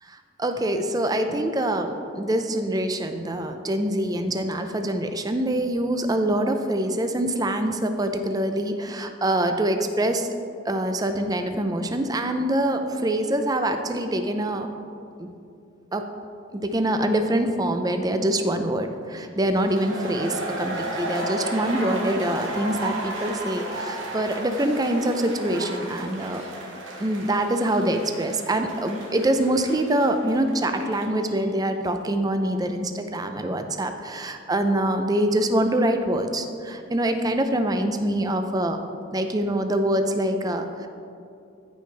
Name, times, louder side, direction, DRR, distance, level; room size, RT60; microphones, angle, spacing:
voice 1, 0.1-10.3 10.7-14.7 15.2-15.3 15.9-16.1 16.5-26.4 27.0-38.8 39.1-40.9, right 1 dB, 20° right, 7 dB, 0.5 m, -25 dB
sound 1, 19.5-31.2, right 1 dB, 75° right, 1.6 m, -34 dB
14.5 x 5.2 x 3.3 m, 2.6 s
head